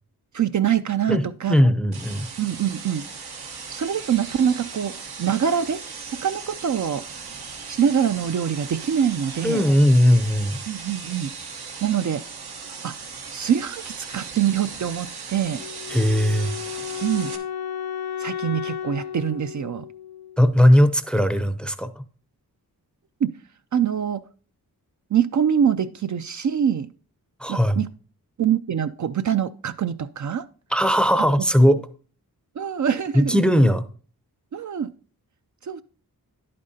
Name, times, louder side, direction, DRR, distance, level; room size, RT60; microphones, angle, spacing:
voice 1, 0.3-1.6 2.4-3.0 3.7-4.9 5.2-5.8 6.2-7.0 7.7-9.6 10.7-11.3 11.8-12.2 12.8-12.9 13.3-15.6 17.0-17.3 18.2-19.9 23.2-23.3 23.7-24.2 25.1-26.9 27.5-27.9 28.4-30.5 32.6-33.4 34.5-34.9 35.7-35.8, right 8 dB, 50° right, 0.4 m, -24 dB
voice 2, 1.5-2.3 9.4-10.6 15.9-16.5 20.4-22.0 27.4-27.8 30.7-31.8 33.1-33.8, equal, 5° left, 0.6 m, -18 dB
sound 1, 1.9-17.4, right 5 dB, 85° right, 1.2 m, -37 dB
Wind instrument woodwind instrument, 15.6-20.6, left 9 dB, 75° left, 0.6 m, -33 dB
10.5 x 8.6 x 2.7 m
wide cardioid pair, 95°, 37 cm